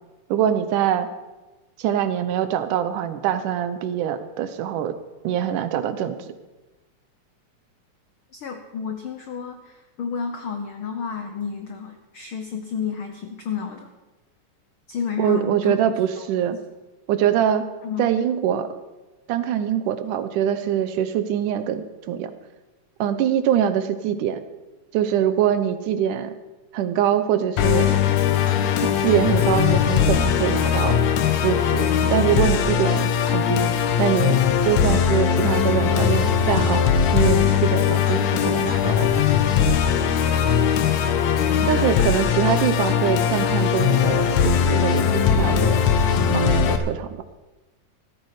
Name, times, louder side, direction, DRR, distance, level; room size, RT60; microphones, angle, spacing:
voice 1, 0.3-1.1 1.8-5.0 5.2-6.2 15.2-16.6 17.1-17.6 18.0-18.7 19.3-22.3 23.0-24.4 24.9-26.3 26.7-27.9 28.8-31.0 31.4-33.7 34.0-36.8 37.1-39.3 41.7-45.9 46.3-47.2, right 10 dB, 75° right, 11 dB, 2.3 m, -23 dB
voice 2, 8.3-13.9 14.9-15.8 16.2-16.3 17.8-18.1, left 6 dB, 85° left, 5 dB, 1.1 m, -31 dB
Musical instrument, 27.6-46.8, left 7 dB, 70° left, 2.1 m, -20 dB
16.0 x 13.5 x 4.9 m, 1.1 s
omnidirectional pair, 3.8 m